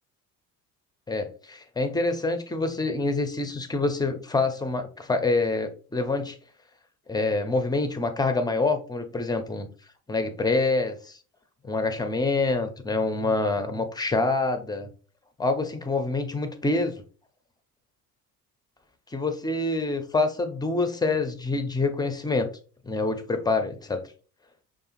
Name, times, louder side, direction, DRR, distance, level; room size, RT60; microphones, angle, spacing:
voice 1, 1.1-6.3 7.1-9.7 10.1-11.2 11.6-14.9 15.4-16.9 19.1-22.5 22.8-24.0, left 3 dB, 10° left, 7 dB, 0.4 m, -26 dB
4.9 x 2.4 x 2.5 m, 0.38 s
figure-of-eight pair, 55°, 48 cm